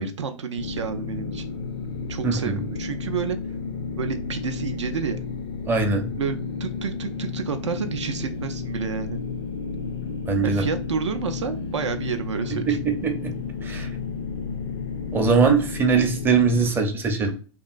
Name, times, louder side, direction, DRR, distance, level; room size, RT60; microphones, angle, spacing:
voice 1, 0.0-1.4 2.1-3.4 4.0-5.2 6.2-9.2 10.4-12.8, right 6 dB, 70° right, 7 dB, 0.4 m, -30 dB
sound 1, 0.6-16.7, left 5 dB, 65° left, 0.4 m, -32 dB
voice 2, 2.2-2.6 5.7-6.1 10.3-10.6 12.7-13.3 13.6-13.9 15.1-17.3, right 5 dB, 15° right, 4 dB, 0.5 m, -21 dB
2.9 x 2.4 x 2.3 m, 0.38 s
figure-of-eight pair, 100°, 16 cm